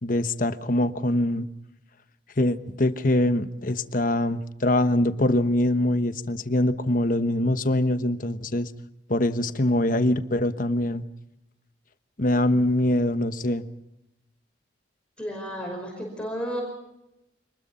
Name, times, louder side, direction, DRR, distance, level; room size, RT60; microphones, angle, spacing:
voice 1, 0.0-1.5 2.4-8.7 9.1-11.0 12.2-13.7, left 1 dB, 45° left, 11 dB, 1.2 m, -23 dB
voice 2, 15.2-16.6, equal, 5° left, 0 dB, 5.2 m, -32 dB
26.5 x 20.5 x 5.7 m, 0.90 s
head